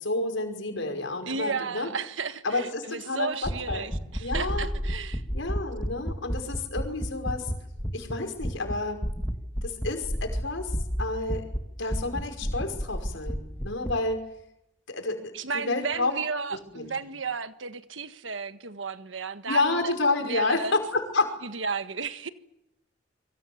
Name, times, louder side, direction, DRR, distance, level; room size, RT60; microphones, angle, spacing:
voice 1, 0.0-1.9 2.4-3.8 4.2-4.7 5.3-7.5 7.9-9.0 9.6-10.7 11.0-11.4 11.8-14.2 14.9-15.2 15.5-16.1 16.5-17.1 19.5-21.4, left 3 dB, 90° left, 5.5 m, -29 dB
voice 2, 1.3-5.2 15.3-19.9 20.2-20.7 21.4-22.3, right 5 dB, 90° right, 1.5 m, -33 dB
sound 1, 3.4-8.1 8.4-8.7 9.0-11.6 11.9-13.9, equal, 10° left, 2.4 m, -30 dB
27.0 x 23.5 x 7.3 m
head